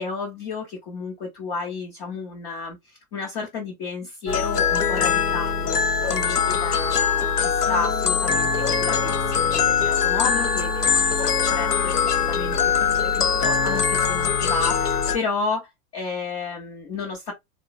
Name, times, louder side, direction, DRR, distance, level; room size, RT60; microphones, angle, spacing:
voice 1, 0.0-12.0 12.2-17.3, left 4 dB, 15° left, 0.3 m, -32 dB
sound 1, 4.3-15.2, left 6 dB, 90° left, 0.5 m, -22 dB
3.5 x 2.0 x 2.4 m
figure-of-eight pair, 95°, 45 cm